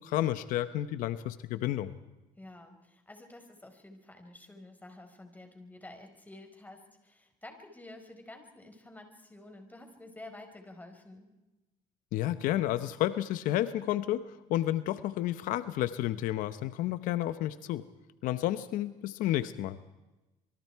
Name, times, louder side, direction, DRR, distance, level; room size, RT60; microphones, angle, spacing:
voice 1, 0.0-1.9 12.1-17.8 18.2-19.8, left 13 dB, 85° left, 13 dB, 0.9 m, -31 dB
voice 2, 2.4-11.3, left 2 dB, 10° left, 5 dB, 5.0 m, -50 dB
26.5 x 24.0 x 4.7 m, 1.0 s
cardioid pair, 100°, 14 cm